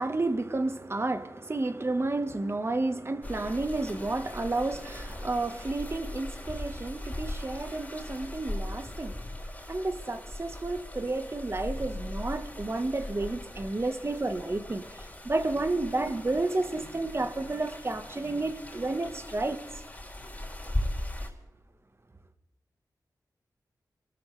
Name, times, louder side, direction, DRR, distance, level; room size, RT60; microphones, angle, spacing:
voice 1, 0.0-9.2 9.7-19.6, right 2 dB, 35° right, 1.4 m, -31 dB
sound 1, 3.2-21.3, left 1 dB, 20° left, 4.1 m, -39 dB
27.5 x 13.0 x 3.4 m
wide cardioid pair, 70°, 7 cm